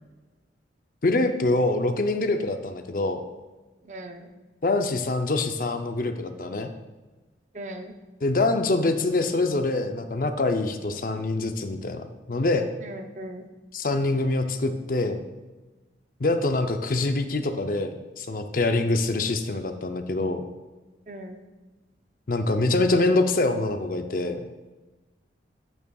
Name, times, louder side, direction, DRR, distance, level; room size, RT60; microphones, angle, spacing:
voice 1, 1.0-3.2 4.6-6.7 8.2-12.7 13.7-15.3 16.2-20.4 22.3-24.4, left 2 dB, 50° left, 7 dB, 0.5 m, -25 dB
voice 2, 3.9-4.3 7.5-7.9 12.8-13.5 21.1-21.4, right 1 dB, 40° right, 5 dB, 0.6 m, -38 dB
9.5 x 8.0 x 2.3 m, 1.2 s
head